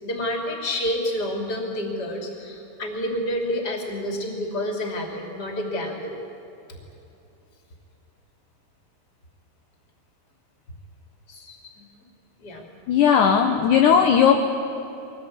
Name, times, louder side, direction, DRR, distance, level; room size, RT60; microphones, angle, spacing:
voice 1, 0.0-6.2 11.3-11.9 12.4-12.7, left 1 dB, 25° left, 2 dB, 2.9 m, -29 dB
voice 2, 12.9-14.4, left 7 dB, 70° left, 3 dB, 2.0 m, -17 dB
23.0 x 18.5 x 8.7 m, 2.9 s
omnidirectional pair, 4.9 m